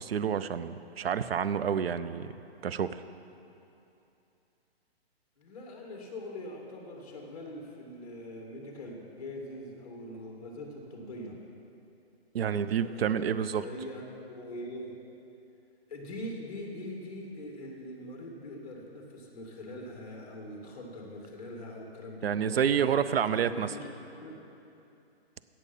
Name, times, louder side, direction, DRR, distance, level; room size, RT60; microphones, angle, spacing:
voice 1, 0.0-2.3 2.6-3.0 12.3-13.6 22.2-23.7, right 8 dB, 70° right, 13 dB, 0.6 m, -28 dB
voice 2, 5.4-11.4 12.5-14.9 15.9-23.9 24.2-24.4, left 1 dB, 35° left, 0 dB, 2.1 m, -42 dB
17.0 x 6.9 x 5.5 m, 2.7 s
hypercardioid pair, 175°, 32 cm